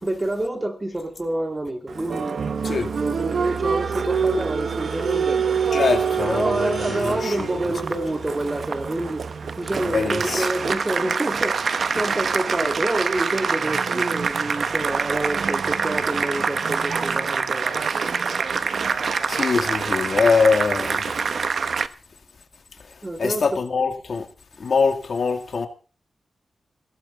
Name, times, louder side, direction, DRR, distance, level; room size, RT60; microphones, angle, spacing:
voice 1, 0.0-2.4 3.0-5.4 5.6-17.8 23.0-23.4, right 1 dB, 25° right, 2.8 m, -28 dB
Applause, 1.9-21.9, right 5 dB, 65° right, 0.9 m, -25 dB
sound 1, 4.8-8.4, right 2 dB, 85° right, 6.4 m, -42 dB
voice 2, 5.7-7.5 9.8-10.5 18.9-21.0 22.8-24.3 24.6-25.7, left 5 dB, 60° left, 2.4 m, -23 dB
17.0 x 15.0 x 4.2 m
wide cardioid pair, 90°, 0 cm